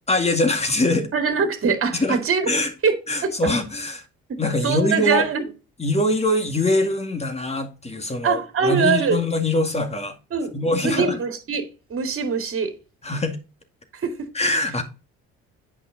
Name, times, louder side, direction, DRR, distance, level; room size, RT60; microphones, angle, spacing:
voice 1, 0.1-1.1 1.9-2.2 2.5-2.7 3.1-4.0 4.4-5.3 5.8-10.1 10.5-11.1 13.0-13.4 14.3-14.8, left 2 dB, 20° left, 2.1 m, -23 dB
voice 2, 1.1-2.5 2.8-3.4 4.3-5.4 8.2-9.2 10.3-10.5 10.8-12.7 13.9-14.1, right 5 dB, 45° right, 2.2 m, -23 dB
8.6 x 5.4 x 3.9 m
supercardioid pair, 70°, 31 cm